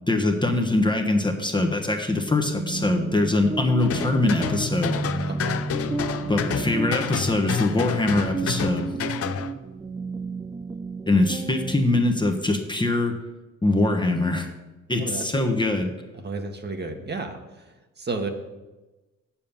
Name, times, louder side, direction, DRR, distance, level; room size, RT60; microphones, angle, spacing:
voice 1, 0.1-5.0 6.3-8.9 11.1-13.1 13.6-14.5 14.9-15.9, left 2 dB, 15° left, 4 dB, 1.1 m, -23 dB
sound 1, 2.1-12.0, right 3 dB, 15° right, 0.4 m, -32 dB
sound 2, 3.8-9.5, left 8 dB, 50° left, 0.7 m, -30 dB
voice 2, 5.3-5.6 15.0-15.5 16.1-18.3, right 3 dB, 35° right, 5 dB, 1.4 m, -33 dB
7.5 x 7.1 x 7.1 m, 1.1 s
cardioid pair, 90°, 30 cm